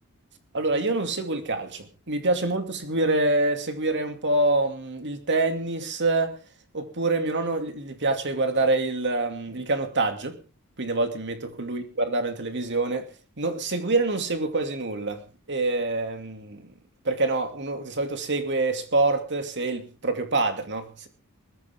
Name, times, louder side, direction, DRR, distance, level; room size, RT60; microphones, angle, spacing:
voice 1, 0.5-6.4 6.7-10.4 10.8-13.1 13.4-15.2 15.5-16.7 17.0-21.1, right 2 dB, 55° right, 2.5 m, -26 dB
20.5 x 14.5 x 3.6 m
head